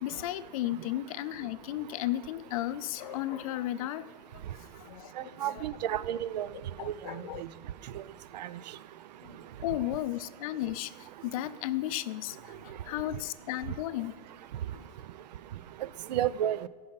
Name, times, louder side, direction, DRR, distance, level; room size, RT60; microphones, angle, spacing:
voice 1, 0.0-4.1 4.3-5.7 6.5-7.4 9.2-14.2 14.7-14.9, left 14 dB, 55° left, 14 dB, 0.4 m, -35 dB
voice 2, 5.4-6.5 6.9-7.2 8.3-8.5 16.1-16.7, right 11 dB, 90° right, 18 dB, 0.4 m, -31 dB
15.0 x 5.6 x 4.0 m, 1.4 s
supercardioid pair, 150°, 21 cm